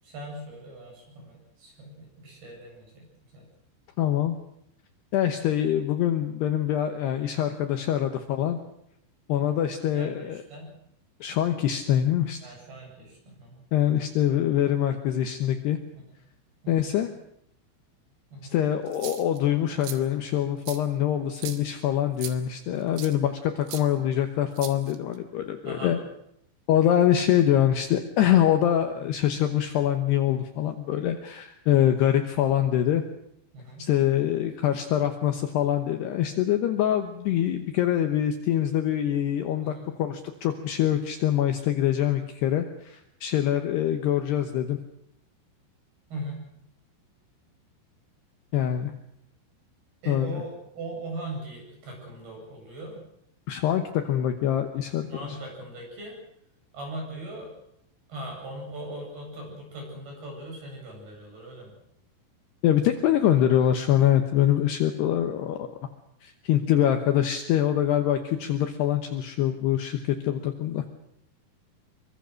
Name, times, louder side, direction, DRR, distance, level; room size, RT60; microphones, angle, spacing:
voice 1, 0.0-3.1 3.3-3.5 7.7-7.8 9.4-9.6 9.9-10.7 12.4-13.6 16.1-16.2 16.6-16.9 18.3-18.6 23.1-23.3 25.6-26.0 33.5-33.9 39.6-39.9 46.1-46.4 50.0-53.0 55.1-56.1 56.7-57.5 58.1-61.8, right 1 dB, 50° right, 1 dB, 10.0 m, -40 dB
voice 2, 4.0-4.4 5.1-8.6 9.3-10.4 11.2-12.4 13.7-15.8 16.7-17.1 18.5-26.0 26.7-33.0 33.8-44.8 48.5-48.9 50.1-50.4 53.5-55.4 62.6-65.8 66.2-70.8, left 11 dB, 70° left, 6 dB, 2.7 m, -24 dB
sound 1, 18.9-19.4 19.8-20.0 20.7-20.8 21.4-21.6 22.2-22.4 23.0-23.2 23.7-23.8 24.6-25.2, right 11 dB, 75° right, 4.2 m, -38 dB
24.5 x 24.0 x 6.4 m, 0.74 s
omnidirectional pair, 5.8 m